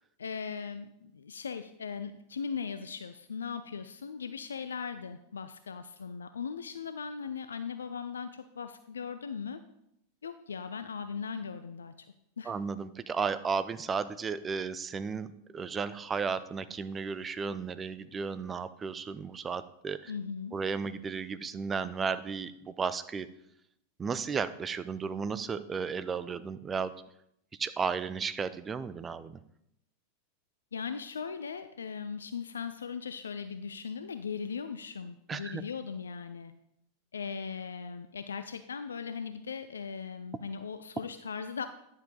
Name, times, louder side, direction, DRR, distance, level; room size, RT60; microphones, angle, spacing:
voice 1, 0.2-9.6 10.2-11.9 12.4-12.5 20.1-20.5 30.7-36.5 37.1-41.7, left 6 dB, 70° left, 10 dB, 0.5 m, -38 dB
voice 2, 12.5-15.3 15.5-20.1 20.5-23.3 24.0-26.9 27.6-29.4 35.3-35.6, right 5 dB, 20° right, 13 dB, 0.5 m, -34 dB
10.5 x 7.2 x 3.8 m, 0.78 s
figure-of-eight pair, 90°, 0 cm